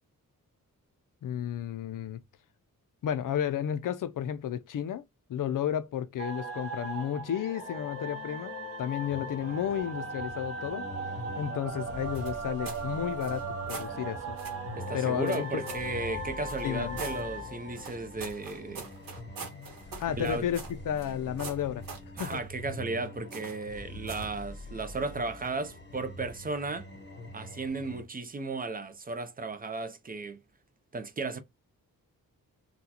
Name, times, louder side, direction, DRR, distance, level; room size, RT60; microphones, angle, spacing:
voice 1, 1.2-2.2 3.0-5.0 5.3-8.5 8.8-10.9 11.4-14.4 14.9-15.6 16.6-17.0 19.5-19.7 20.0-21.9 22.2-22.4, left 10 dB, 65° left, 0.5 m, -32 dB
sound 1, 6.2-18.8, right 2 dB, 40° right, 0.8 m, -38 dB
sound 2, 9.1-28.0, equal, 30° left, 0.7 m, -44 dB
sound 3, 12.1-12.9 13.2-13.9 14.4-14.6 15.3-15.9 16.5-17.2 17.8-21.1 21.4-22.4 23.3-23.7 24.1-24.4, right 4 dB, 70° right, 1.3 m, -43 dB
voice 2, 14.8-18.9 20.1-20.5 22.2-26.9 27.3-30.4 30.9-31.4, right 3 dB, 25° right, 0.4 m, -35 dB
3.9 x 2.3 x 2.8 m
wide cardioid pair, 155°, 35 cm